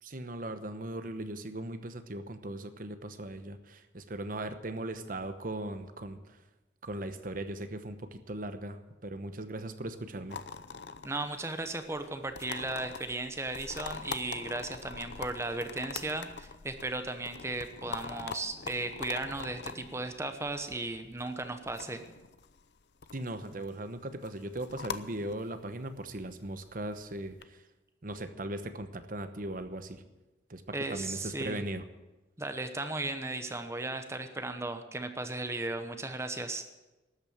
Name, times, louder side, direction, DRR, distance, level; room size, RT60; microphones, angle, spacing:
voice 1, 0.0-6.2 6.8-10.4 23.1-27.6 28.0-30.0 30.5-30.6 30.9-31.8, right 1 dB, 50° right, 10 dB, 1.0 m, -38 dB
sound 1, 10.3-27.4, left 5 dB, 70° left, 0.7 m, -44 dB
voice 2, 11.0-22.0 30.7-31.6 32.4-36.7, right 2 dB, 15° right, 8 dB, 1.0 m, -36 dB
13.0 x 8.9 x 8.9 m, 1.1 s
head